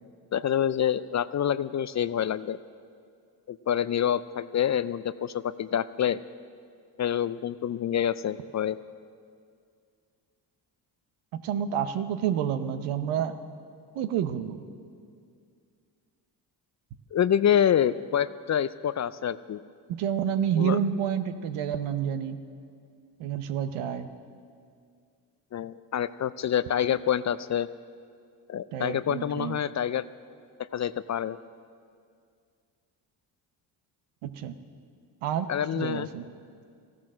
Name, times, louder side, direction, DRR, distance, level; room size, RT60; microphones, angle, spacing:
voice 1, 0.3-2.6 3.5-6.2 7.0-8.8 17.1-19.6 20.6-20.8 25.5-27.7 28.5-30.1 30.7-31.4 35.5-36.1, left 9 dB, 35° left, 16 dB, 0.4 m, -27 dB
voice 2, 11.3-13.4 13.9-14.6 19.9-22.4 23.2-24.1 28.7-29.6 34.2-34.5 35.2-36.3, right 9 dB, 80° right, 10 dB, 0.9 m, -29 dB
14.5 x 12.0 x 6.2 m, 2.2 s
hypercardioid pair, 50°, 50 cm